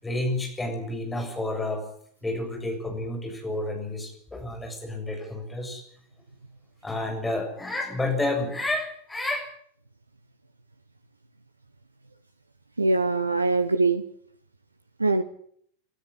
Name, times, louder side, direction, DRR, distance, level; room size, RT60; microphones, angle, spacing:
voice 1, 0.0-1.9 2.2-5.8 6.8-9.5, left 2 dB, 10° left, 3 dB, 7.0 m, -30 dB
voice 2, 12.8-14.0 15.0-15.2, right 3 dB, 80° right, 12 dB, 1.0 m, -22 dB
25.0 x 13.0 x 9.8 m, 0.65 s
figure-of-eight pair, 90°, 0 cm